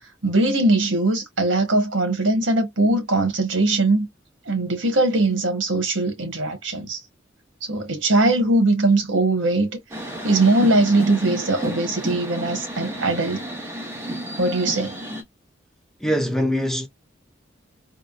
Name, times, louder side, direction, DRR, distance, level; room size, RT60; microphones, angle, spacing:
voice 1, 0.2-4.1 4.5-7.0 7.6-9.7 10.2-13.4 14.4-15.0, right 2 dB, 80° right, 1.3 m, -20 dB
sound 1, 9.9-15.2, equal, 15° right, 0.9 m, -32 dB
voice 2, 16.0-16.9, equal, ahead, 0.5 m, -22 dB
3.6 x 2.2 x 2.5 m
head